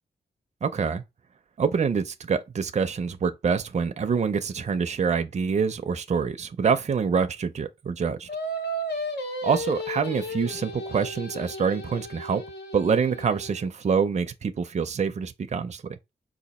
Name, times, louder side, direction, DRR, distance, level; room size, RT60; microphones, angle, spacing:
voice 1, 0.6-1.0 1.6-8.3 9.4-12.4 12.7-15.8, right 6 dB, 40° right, 0.5 m, -26 dB
Singing, 8.3-13.7, left 1 dB, 80° left, 1.0 m, -34 dB
4.9 x 2.5 x 4.1 m
wide cardioid pair, 145°, 17 cm